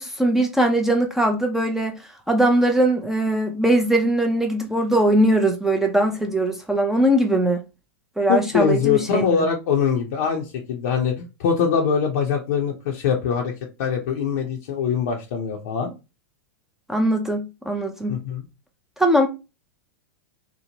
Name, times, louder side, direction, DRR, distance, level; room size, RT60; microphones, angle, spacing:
voice 1, 0.0-7.6 8.2-9.5 16.9-18.2 19.0-19.3, right 1 dB, 5° right, 0.4 m, -20 dB
voice 2, 8.3-13.5 13.8-15.9 18.1-18.4, left 6 dB, 65° left, 0.6 m, -23 dB
2.9 x 2.1 x 2.8 m
hypercardioid pair, 110°, 9 cm